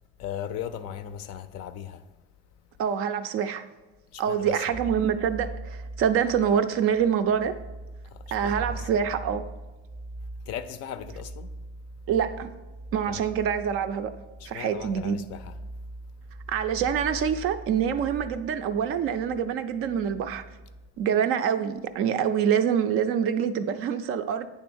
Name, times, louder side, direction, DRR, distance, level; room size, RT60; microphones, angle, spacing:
voice 1, 0.2-2.0 4.1-4.8 8.0-8.9 10.5-11.5 13.1-13.3 14.4-15.6, left 9 dB, 45° left, 0.5 m, -38 dB
voice 2, 2.8-3.7 4.2-7.6 8.3-9.5 12.1-12.5 12.9-14.1 14.5-15.2 16.5-20.4 21.0-24.5, right 8 dB, 40° right, 0.4 m, -26 dB
sound 1, 4.7-20.9, right 1 dB, ahead, 0.6 m, -41 dB
9.3 x 3.4 x 6.2 m
supercardioid pair, 135°, 35 cm